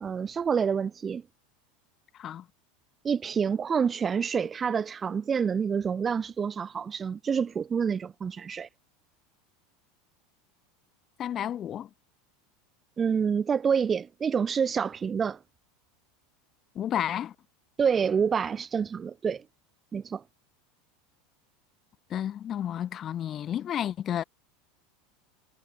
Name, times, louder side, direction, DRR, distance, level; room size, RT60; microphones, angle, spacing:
voice 1, 0.0-1.2 3.0-8.7 13.0-15.4 17.8-19.4 19.9-20.2, right 6 dB, 25° right, 0.4 m, -27 dB
voice 2, 2.1-2.5 11.2-11.9 16.7-17.3 22.1-24.2, left 10 dB, 35° left, 0.9 m, -31 dB
figure-of-eight pair, 80°, 0 cm